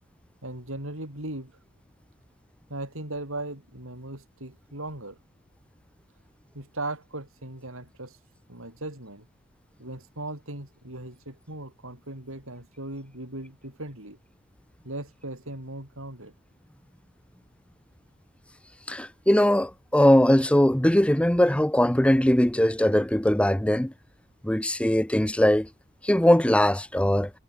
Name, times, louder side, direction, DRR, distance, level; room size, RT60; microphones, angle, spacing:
voice 1, 0.4-1.5 2.7-5.2 6.5-9.3 9.8-14.2 14.8-16.3, right 2 dB, 65° right, 7.8 m, -38 dB
voice 2, 18.9-23.9 24.4-25.7 26.0-27.3, left 1 dB, 5° left, 0.9 m, -21 dB
head